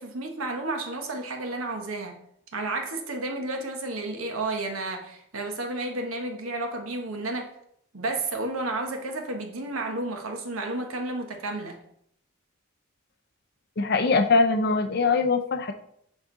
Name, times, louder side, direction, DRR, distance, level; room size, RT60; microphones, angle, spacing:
voice 1, 0.0-2.2 2.5-7.5 7.9-11.8, right 2 dB, 85° right, 3 dB, 1.1 m, -31 dB
voice 2, 13.8-15.7, left 4 dB, 50° left, 6 dB, 0.6 m, -22 dB
6.5 x 4.8 x 3.8 m, 0.71 s
head